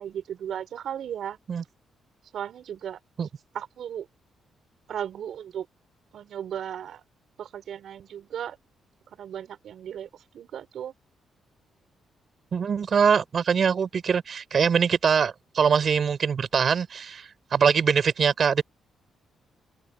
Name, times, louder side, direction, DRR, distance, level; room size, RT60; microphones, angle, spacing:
voice 1, 0.0-1.4 2.3-3.0 3.5-4.1 4.9-5.7 6.1-7.0 7.4-8.6 9.2-10.9, right 9 dB, 65° right, 5.9 m, -35 dB
voice 2, 12.5-18.6, right 6 dB, 40° right, 4.8 m, -23 dB
open air
cardioid pair, 150°, 0 cm